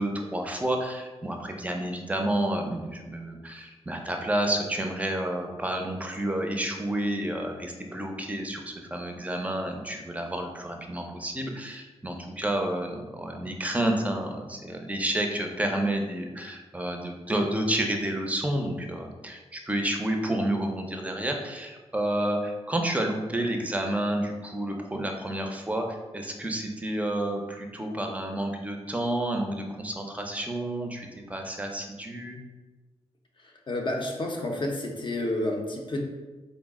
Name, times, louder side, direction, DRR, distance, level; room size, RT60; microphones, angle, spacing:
voice 1, 0.0-25.8 26.1-32.4, right 1 dB, 10° right, 3 dB, 0.5 m, -30 dB
voice 2, 33.7-36.0, left 1 dB, 45° left, 1 dB, 0.6 m, -30 dB
3.8 x 2.0 x 3.5 m, 1.2 s
cardioid pair, 90°, 11 cm